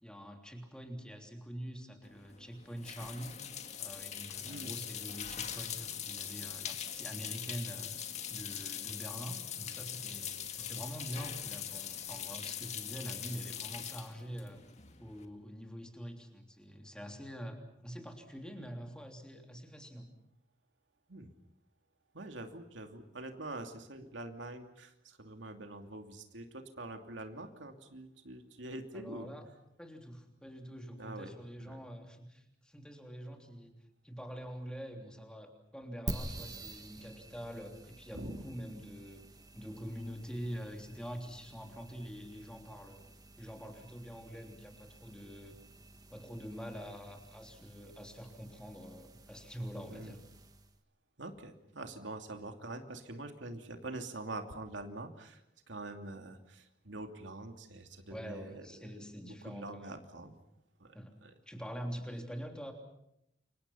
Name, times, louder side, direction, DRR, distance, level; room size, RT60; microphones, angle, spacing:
voice 1, 0.0-3.4 3.8-7.9 8.3-14.6 15.0-20.1 28.9-29.4 29.8-33.7 34.0-39.2 39.5-43.0 43.4-45.6 46.1-50.2 58.1-60.0 60.9-61.1 61.5-62.7, equal, 5° left, 3 dB, 3.3 m, -45 dB
sound 1, 2.0-15.2, left 9 dB, 40° left, 2.1 m, -42 dB
voice 2, 4.4-4.7 21.1-21.3 22.1-29.3 31.0-31.3 31.6-31.8 36.4-36.5 38.1-38.4 49.9-50.2 51.2-55.4 55.7-58.9 59.2-60.4 60.8-61.0 61.2-61.3, right 2 dB, 90° right, 5 dB, 2.8 m, -45 dB
sound 2, 36.1-50.8, right 1 dB, 20° right, 1.7 m, -49 dB
29.5 x 25.0 x 5.7 m, 0.79 s
head